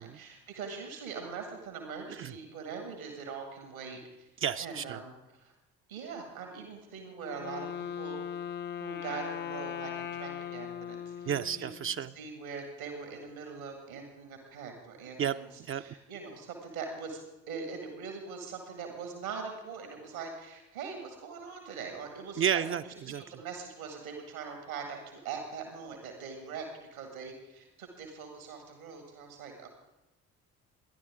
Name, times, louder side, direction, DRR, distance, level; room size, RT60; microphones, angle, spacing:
voice 1, 0.0-4.3 4.6-5.5 5.9-7.7 8.0-8.2 8.8-11.7 12.2-15.5 15.8-26.7 26.9-29.7, right 5 dB, 80° right, 4 dB, 2.0 m, -42 dB
voice 2, 4.4-5.0 11.3-12.1 15.2-15.8 22.4-23.2, right 8 dB, 30° right, 10 dB, 0.5 m, -32 dB
Wind instrument woodwind instrument, 7.2-12.1, left 9 dB, 25° left, 0.4 m, -39 dB
24.5 x 10.5 x 3.7 m, 1.0 s
figure-of-eight pair, 50°, 42 cm